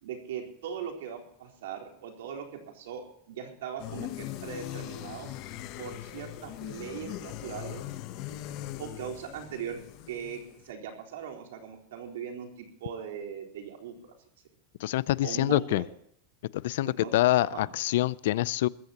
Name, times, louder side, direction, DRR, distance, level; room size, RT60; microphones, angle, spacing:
voice 1, 0.0-5.3 5.8-7.8 8.8-9.8 10.1-14.1 15.2-15.8 16.8-17.1 17.4-17.7, right 8 dB, 85° right, 2 dB, 3.9 m, -39 dB
sound 1, 3.8-10.7, left 14 dB, 40° left, 0.9 m, -40 dB
voice 2, 14.8-15.8 16.5-18.7, left 15 dB, 65° left, 21 dB, 0.5 m, -26 dB
21.0 x 15.0 x 2.9 m, 0.70 s
supercardioid pair, 175°, 0 cm